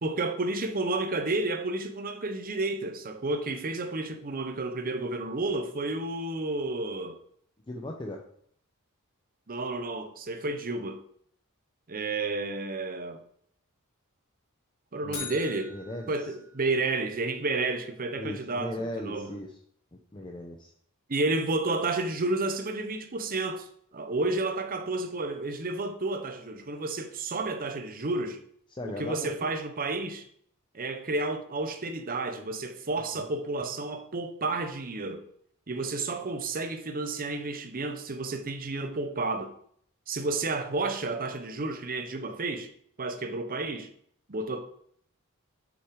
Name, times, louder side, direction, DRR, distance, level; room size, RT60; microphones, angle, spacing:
voice 1, 0.0-7.2 9.5-11.0 11.9-13.2 14.9-15.7 16.1-19.3 21.1-23.7 23.9-28.4 28.9-30.3 30.7-35.2 35.7-39.5 40.1-42.7 43.0-43.9 44.3-44.6, right 2 dB, 40° right, 0.8 m, -31 dB
voice 2, 7.7-8.2 15.0-15.4 15.7-16.1 18.2-19.5 20.1-20.7 28.7-29.3 33.1-33.3, left 1 dB, 20° left, 0.7 m, -37 dB
sound 1, 15.1-17.3, left 5 dB, 70° left, 2.7 m, -43 dB
6.8 x 6.3 x 4.7 m
head